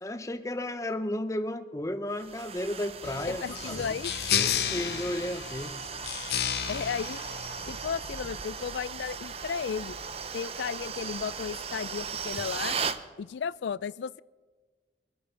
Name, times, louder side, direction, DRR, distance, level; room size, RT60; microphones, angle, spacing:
voice 1, 0.0-3.9 4.5-5.7, left 1 dB, 20° left, 9 dB, 0.7 m, -33 dB
sound 1, 2.2-13.0, right 6 dB, 35° right, 0.6 m, -37 dB
sound 2, 3.0-8.1, left 9 dB, 65° left, 0.8 m, -32 dB
voice 2, 3.3-4.4 6.7-7.2 7.7-10.0 10.3-12.8 13.2-14.2, left 6 dB, 85° left, 20 dB, 0.4 m, -34 dB
24.0 x 8.7 x 5.7 m, 1.4 s
head